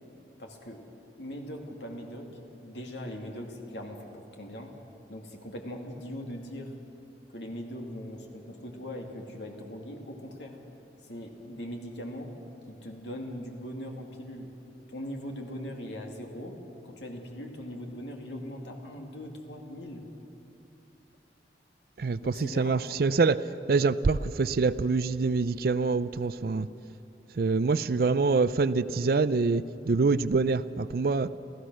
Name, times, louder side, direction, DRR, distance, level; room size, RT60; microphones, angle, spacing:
voice 1, 0.4-0.8 1.2-4.7 5.1-6.8 7.3-10.5 11.1-12.3 12.7-14.5 14.9-16.6 16.8-20.0 22.2-22.8, equal, 85° left, 2 dB, 2.6 m, -40 dB
voice 2, 22.0-23.4 23.7-26.7 27.4-31.3, right 4 dB, 55° right, 15 dB, 0.4 m, -25 dB
28.5 x 15.0 x 6.3 m, 2.9 s
head